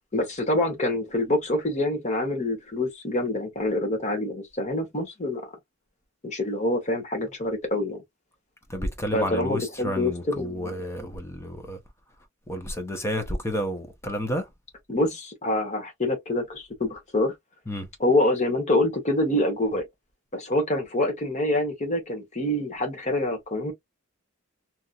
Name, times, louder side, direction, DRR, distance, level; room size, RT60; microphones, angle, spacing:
voice 1, 0.1-5.4 6.2-8.0 9.1-10.7 14.9-17.3 18.0-19.9 20.3-23.7, left 1 dB, 35° left, 1.1 m, -26 dB
voice 2, 8.7-11.8 12.5-14.4 17.7-17.9, equal, 10° left, 0.8 m, -30 dB
2.9 x 2.5 x 2.4 m
head